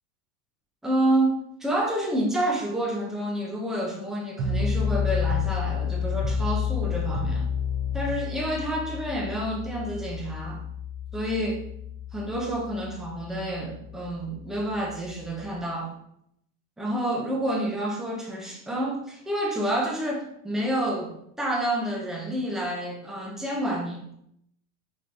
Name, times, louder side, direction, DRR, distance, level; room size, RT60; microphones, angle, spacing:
voice 1, 0.8-7.5 7.9-10.6 11.1-11.6 12.1-15.9 16.8-24.0, right 1 dB, ahead, -1 dB, 0.3 m, -29 dB
sound 1, 4.4-15.5, left 6 dB, 30° right, 0.7 m, -30 dB
5.5 x 3.1 x 2.5 m, 0.74 s
supercardioid pair, 140°, 40 cm